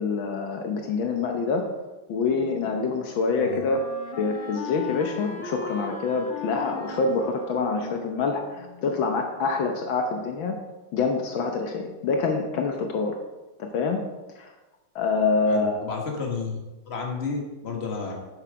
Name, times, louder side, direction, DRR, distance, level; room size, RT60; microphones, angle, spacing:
voice 1, 0.0-1.7 2.1-3.8 4.2-10.6 10.9-13.2 13.6-14.0 14.4-14.5 14.9-15.8, left 4 dB, 70° left, 3 dB, 1.7 m, -26 dB
Wind instrument woodwind instrument, 2.3-9.2, left 5 dB, 55° left, 0.8 m, -39 dB
voice 2, 15.5-16.6 16.9-18.1, left 4 dB, 30° left, 0 dB, 1.9 m, -31 dB
10.5 x 7.6 x 5.1 m, 1.1 s
omnidirectional pair, 2.3 m